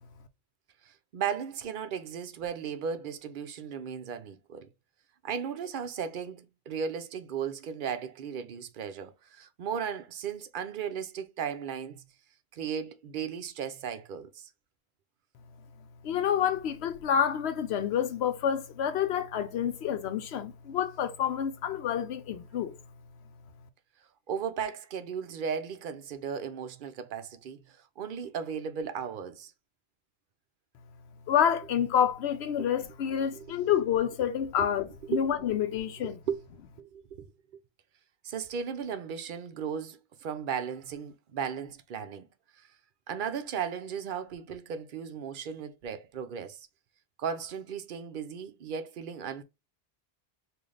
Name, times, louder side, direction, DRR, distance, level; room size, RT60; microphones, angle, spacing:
voice 1, 0.8-4.7 5.2-12.0 12.5-14.5 24.3-29.5 32.6-32.7 33.3-33.5 34.6-34.7 35.1-35.2 36.0-36.4 36.8-37.3 38.2-42.3 42.6-42.7 43.1-46.7 47.2-49.4, right 7 dB, 60° right, 0.6 m, -36 dB
voice 2, 16.0-22.8 31.3-36.2, left 9 dB, 80° left, 0.8 m, -28 dB
3.8 x 2.5 x 3.2 m
omnidirectional pair, 1.1 m